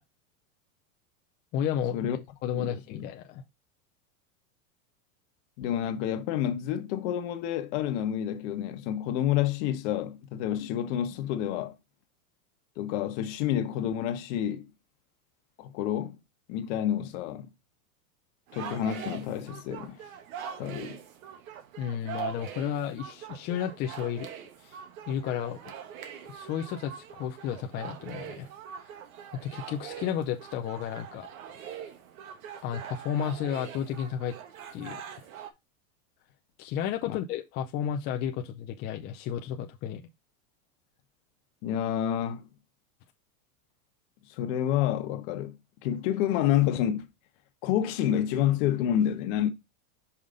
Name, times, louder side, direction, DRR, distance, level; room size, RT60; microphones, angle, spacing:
voice 1, 1.5-3.4 21.8-24.3 24.6-24.8 25.1-25.7 26.3-28.5 29.3-31.3 32.6-34.4 34.7-35.3 36.6-40.0, left 9 dB, 25° left, 0.4 m, -32 dB
voice 2, 2.5-3.0 5.6-11.7 12.8-14.6 15.6-16.1 16.5-17.5 18.5-20.0 20.6-21.0 37.1-37.2 41.6-42.4 44.4-45.6 45.8-47.1 47.6-49.5, left 10 dB, 50° left, 1.2 m, -29 dB
sound 1, 18.5-35.5, right 8 dB, 65° right, 1.4 m, -43 dB
5.7 x 4.9 x 3.9 m
supercardioid pair, 140°, 43 cm